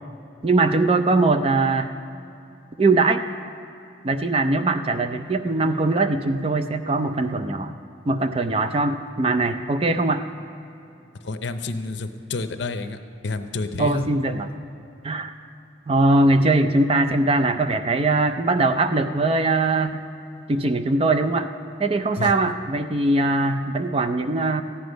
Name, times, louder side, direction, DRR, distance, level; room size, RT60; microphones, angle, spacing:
voice 1, 0.4-1.9 2.8-3.3 4.0-7.7 8.1-10.2 13.8-14.5 15.0-15.3 15.9-20.0 20.5-21.5 21.8-24.6, right 2 dB, 30° right, 8 dB, 0.4 m, -21 dB
voice 2, 11.2-13.0 13.2-14.1 22.2-22.3, left 3 dB, 70° left, 8 dB, 0.7 m, -29 dB
14.5 x 9.7 x 5.1 m, 2.7 s
head